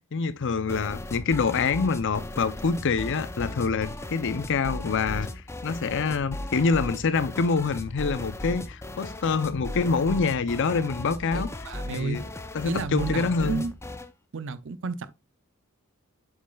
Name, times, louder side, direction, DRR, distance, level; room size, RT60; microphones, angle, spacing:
voice 1, 0.1-5.3 5.6-11.5 11.9-12.2 12.5-13.6, left 4 dB, 60° left, 0.6 m, -26 dB
sound 1, 0.7-14.1, left 1 dB, 10° left, 0.6 m, -37 dB
voice 2, 11.3-12.2 12.6-13.7 14.3-15.1, right 4 dB, 60° right, 0.6 m, -31 dB
8.0 x 6.3 x 2.3 m
head